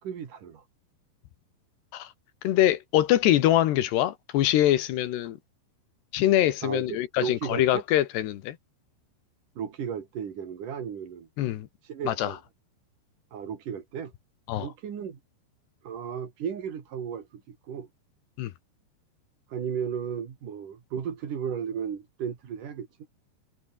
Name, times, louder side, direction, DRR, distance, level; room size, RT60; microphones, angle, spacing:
voice 1, 0.0-0.6 6.6-7.8 9.6-11.3 11.8-12.4 13.3-14.1 14.6-15.2 15.8-17.9 19.5-22.9, right 7 dB, 50° right, 3.8 m, -35 dB
voice 2, 2.4-5.4 6.1-8.6 11.4-11.7 12.1-12.3 14.5-14.7 18.4-18.5, left 13 dB, 70° left, 3.2 m, -24 dB
omnidirectional pair, 5.4 m